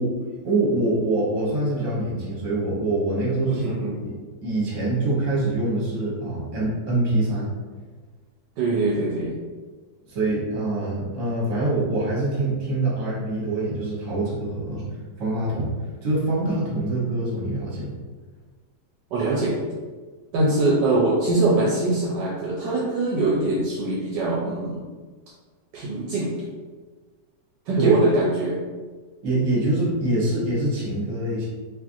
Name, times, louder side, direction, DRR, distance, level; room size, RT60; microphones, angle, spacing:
voice 1, 0.0-3.7 4.0-4.1 4.4-7.5 10.1-14.8 15.2-15.7 16.0-17.9 27.8-27.9 29.2-31.5, right 2 dB, 50° right, -6 dB, 1.2 m, -24 dB
voice 2, 3.5-3.9 8.6-9.4 19.1-19.6 20.3-24.9 25.7-26.3 27.7-28.6, right 2 dB, 75° right, -4 dB, 1.1 m, -22 dB
3.0 x 2.5 x 2.5 m, 1.4 s
omnidirectional pair, 2.0 m